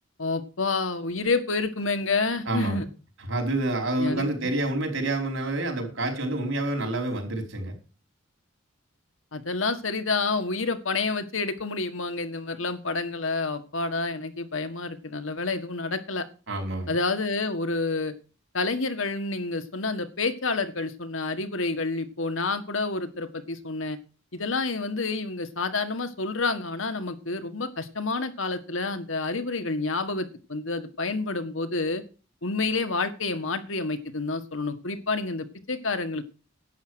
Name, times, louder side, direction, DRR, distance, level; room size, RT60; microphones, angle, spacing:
voice 1, 0.2-2.8 4.0-4.5 9.3-16.3 16.9-18.1 18.5-24.0 24.3-32.0 32.4-36.2, left 3 dB, 75° left, 8 dB, 1.8 m, -29 dB
voice 2, 2.5-2.9 3.3-7.7 16.5-17.0, right 2 dB, 80° right, 2 dB, 4.7 m, -28 dB
11.0 x 9.0 x 6.4 m, 0.35 s
head